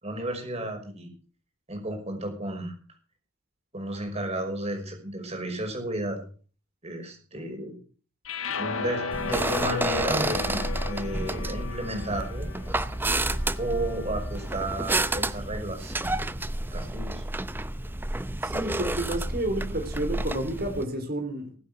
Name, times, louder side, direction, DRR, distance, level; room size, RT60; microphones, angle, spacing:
voice 1, 0.0-1.1 1.7-2.8 3.7-6.2 6.8-7.7 8.6-10.6 10.9-12.5 13.6-16.5 16.7-17.2, right 1 dB, 30° right, 5.7 m, -33 dB
sound 1, 8.2-14.5, left 5 dB, 90° left, 1.4 m, -35 dB
sound 2, 9.1-20.8, right 2 dB, 10° right, 0.6 m, -30 dB
voice 2, 18.4-21.6, right 1 dB, 50° right, 3.5 m, -30 dB
19.5 x 8.8 x 6.2 m
head